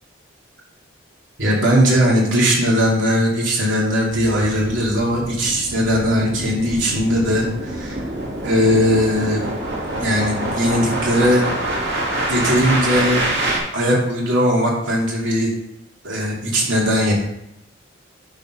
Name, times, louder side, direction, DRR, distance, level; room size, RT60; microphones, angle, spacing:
voice 1, 1.4-8.0 8.4-9.4 10.0-11.5 12.3-13.2 13.7-15.5 16.0-17.1, equal, 75° right, -3 dB, 2.7 m, -19 dB
sound 1, 4.1-13.6, right 1 dB, 55° right, 2.5 m, -26 dB
10.5 x 4.1 x 5.5 m, 0.83 s
head